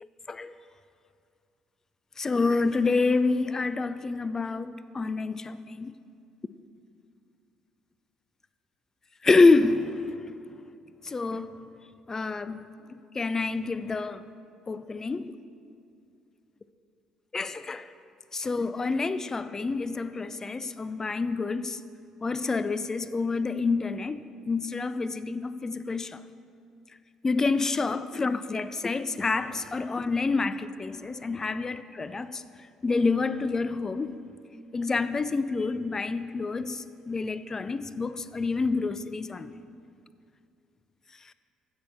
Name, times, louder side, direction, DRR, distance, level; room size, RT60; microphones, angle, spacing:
voice 1, 2.2-5.9 9.2-10.2 11.0-11.5 12.1-12.6 12.9-14.3 14.7-15.3 17.3-17.9 18.3-21.8 22.2-26.2 27.2-32.4 32.8-34.2 34.7-39.5, left 3 dB, 25° left, 0.4 m, -27 dB
15.0 x 6.1 x 3.4 m
figure-of-eight pair, 50°, 2 cm